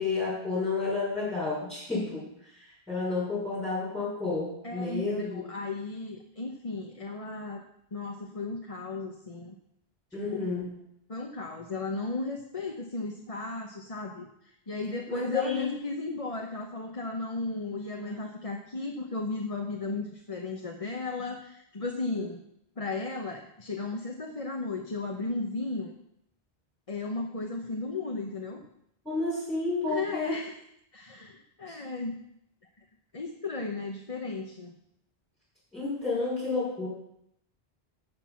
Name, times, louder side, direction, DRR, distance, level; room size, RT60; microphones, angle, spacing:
voice 1, 0.0-2.3 2.9-5.4 10.1-10.6 15.1-15.6 18.0-18.2 22.2-22.3 29.0-30.3 31.7-31.8 35.7-36.9, left 3 dB, ahead, -9 dB, 6.1 m, -30 dB
voice 2, 4.6-7.6 7.9-9.5 10.1-10.6 11.1-22.4 22.8-25.9 26.9-28.7 29.9-30.6 30.9-32.1 33.1-34.7, left 3 dB, 35° left, 1 dB, 1.1 m, -35 dB
13.5 x 8.1 x 5.9 m, 0.76 s
omnidirectional pair, 1.0 m